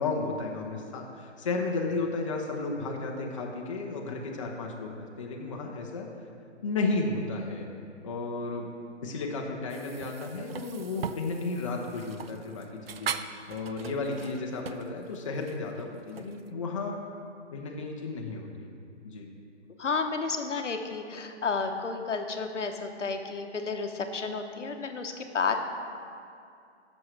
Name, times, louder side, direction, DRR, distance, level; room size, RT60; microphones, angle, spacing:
voice 1, 0.0-6.1 6.6-7.7 8.0-8.7 9.0-13.1 13.5-17.0 17.5-18.7 19.0-19.3, left 3 dB, 30° left, 0 dB, 0.7 m, -33 dB
sound 1, 9.7-16.5, right 7 dB, 55° right, 0.4 m, -40 dB
voice 2, 19.8-25.6, left 4 dB, 85° left, 5 dB, 1.0 m, -31 dB
14.0 x 6.3 x 3.2 m, 2.5 s
hypercardioid pair, 155°, 36 cm